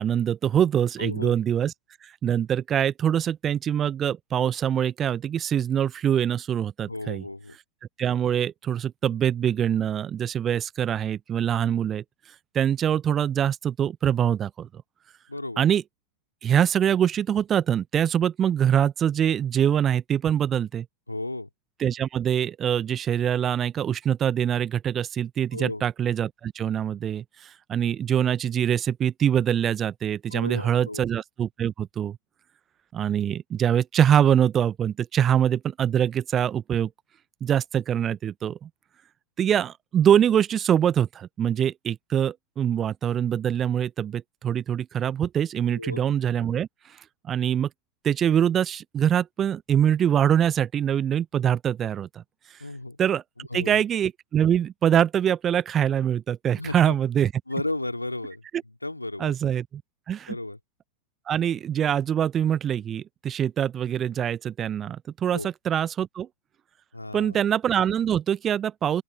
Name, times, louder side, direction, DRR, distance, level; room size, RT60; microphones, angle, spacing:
voice 1, 0.0-1.7 2.0-7.2 8.0-12.0 12.5-14.7 15.6-15.8 16.4-20.9 21.8-32.2 32.9-36.9 37.4-38.7 39.4-46.7 47.2-47.7 48.0-52.2 53.0-53.2 53.5-57.3 59.2-59.8 60.1-60.4 61.3-66.3 67.1-69.0, right 9 dB, 25° right, 0.7 m, -24 dB
voice 2, 1.0-1.3 6.9-7.5 15.3-15.6 21.1-21.5 25.5-25.8 30.3-31.1 45.7-46.0 52.6-53.0 53.4-53.8 56.6-56.9 57.5-58.4 58.8-59.3 60.3-60.6 65.3-65.5 66.9-67.4, left 2 dB, 85° left, 3.3 m, -33 dB
open air
figure-of-eight pair, 90°, 0 cm